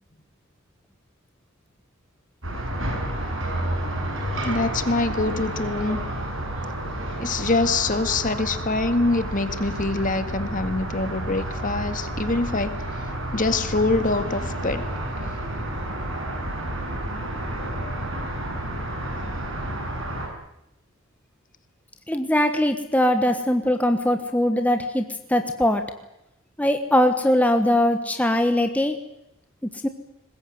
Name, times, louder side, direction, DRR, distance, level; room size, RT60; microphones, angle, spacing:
sound 1, 2.4-20.3, right 1 dB, 60° right, 7.2 m, -30 dB
voice 1, 4.4-6.0 7.2-12.8 13.3-14.8, left 3 dB, 40° left, 10 dB, 1.9 m, -24 dB
voice 2, 22.1-25.9 26.6-29.0 29.8-29.9, left 1 dB, 5° left, 6 dB, 1.3 m, -21 dB
22.5 x 20.5 x 9.5 m, 0.86 s
head